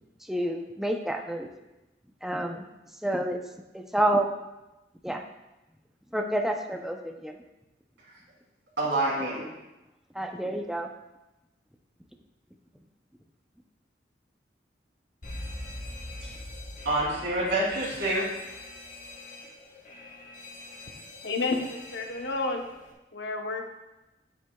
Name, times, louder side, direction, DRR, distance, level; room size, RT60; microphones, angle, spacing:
voice 1, 0.2-1.5 2.2-2.7 3.0-3.4 3.7-4.3 5.0-5.2 6.1-7.4 10.1-10.9, right 1 dB, ahead, 3 dB, 0.5 m, -29 dB
voice 2, 8.8-9.5 16.2-16.3 16.8-18.3, right 1 dB, 75° right, -5 dB, 2.9 m, -27 dB
Alarm, 15.2-22.9, left 1 dB, 45° left, 1.1 m, -43 dB
voice 3, 21.2-22.6 23.1-23.7, left 3 dB, 75° left, 3 dB, 0.9 m, -30 dB
9.3 x 8.0 x 2.3 m, 1.0 s
head